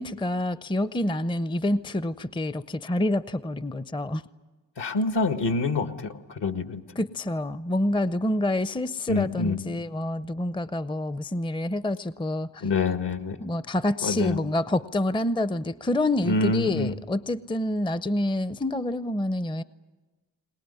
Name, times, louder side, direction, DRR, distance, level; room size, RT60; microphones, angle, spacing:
voice 1, 0.0-4.2 7.0-12.6 13.4-19.6, left 1 dB, 10° left, 15 dB, 0.7 m, -27 dB
voice 2, 4.8-6.8 9.1-9.6 12.6-13.4 14.0-14.4 16.2-16.9, left 3 dB, 65° left, 9 dB, 1.7 m, -26 dB
22.0 x 20.0 x 9.8 m, 1.2 s
supercardioid pair, 40°, 45 cm